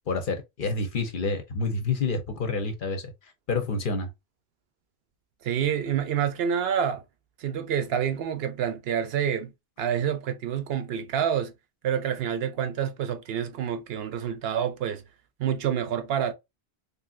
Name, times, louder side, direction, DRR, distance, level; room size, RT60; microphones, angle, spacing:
voice 1, 0.1-3.1 3.5-4.1, left 3 dB, 55° left, 0.7 m, -28 dB
voice 2, 5.4-7.0 7.4-9.5 9.8-11.5 11.8-15.0 15.4-16.3, right 8 dB, 70° right, 0.8 m, -27 dB
3.1 x 2.6 x 2.3 m
omnidirectional pair, 1.1 m